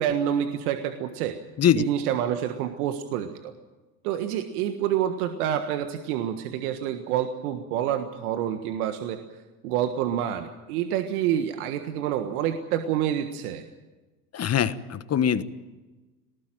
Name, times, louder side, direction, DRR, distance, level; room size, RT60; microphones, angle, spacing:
voice 1, 0.0-1.4 1.8-3.5 4.0-9.2 9.6-13.6, right 10 dB, 75° right, 7 dB, 1.6 m, -27 dB
voice 2, 14.3-15.4, left 9 dB, 35° left, 13 dB, 1.3 m, -22 dB
19.5 x 19.0 x 9.0 m, 1.2 s
hypercardioid pair, 80°, 45 cm